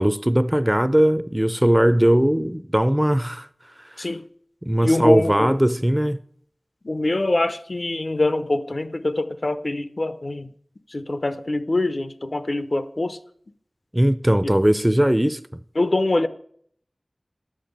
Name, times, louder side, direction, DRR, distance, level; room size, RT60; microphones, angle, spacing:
voice 1, 0.0-3.5 4.6-6.2 13.9-15.4, right 1 dB, 10° right, 0.5 m, -19 dB
voice 2, 4.8-5.5 6.8-10.5 10.9-13.2 15.8-16.3, left 2 dB, 55° left, 0.7 m, -24 dB
10.5 x 7.5 x 6.6 m
wide cardioid pair, 60°, 0 cm